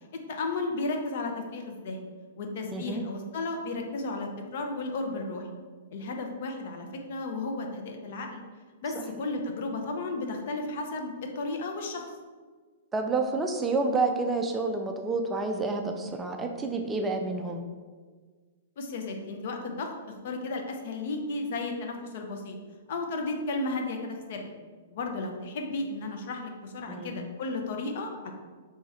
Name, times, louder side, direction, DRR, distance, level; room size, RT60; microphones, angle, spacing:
voice 1, 0.1-2.1 2.4-5.5 5.9-8.4 8.8-12.1 18.8-19.9 20.2-22.6 22.9-24.5 24.9-28.3, left 2 dB, 50° left, 3 dB, 0.6 m, -34 dB
voice 2, 2.7-3.0 12.9-17.6 26.9-27.2, right 3 dB, 15° right, 4 dB, 0.3 m, -29 dB
3.4 x 3.1 x 4.2 m, 1.5 s
figure-of-eight pair, 110°, 0 cm